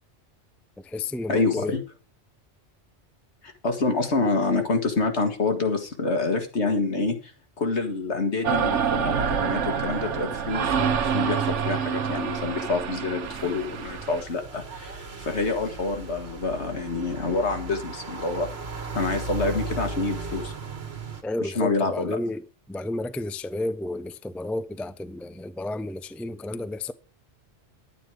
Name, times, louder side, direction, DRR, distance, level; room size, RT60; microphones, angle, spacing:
voice 1, 0.8-1.7 21.2-26.9, left 2 dB, ahead, 0.4 m, -32 dB
voice 2, 1.3-1.8 3.4-7.3 7.6-18.5 18.9-20.5 21.4-22.2, left 3 dB, 70° left, 2.2 m, -27 dB
sound 1, 8.4-14.2, right 7 dB, 90° right, 1.3 m, -27 dB
sound 2, 13.2-21.2, right 3 dB, 60° right, 1.8 m, -36 dB
11.0 x 9.2 x 4.9 m
omnidirectional pair, 1.2 m